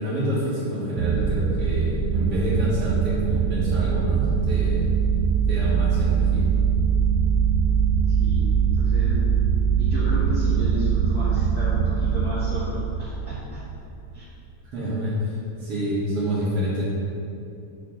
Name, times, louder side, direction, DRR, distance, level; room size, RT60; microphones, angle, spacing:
voice 1, 0.0-4.9 5.5-6.5 14.6-16.8, right 1 dB, 55° right, -7 dB, 1.7 m, -27 dB
sound 1, 1.0-13.8, right 6 dB, 90° right, 1.8 m, -22 dB
voice 2, 8.1-8.5 8.8-9.2 9.8-13.6 14.1-14.3, left 1 dB, 55° left, -10 dB, 1.0 m, -33 dB
9.3 x 6.6 x 3.8 m, 2.6 s
omnidirectional pair, 4.5 m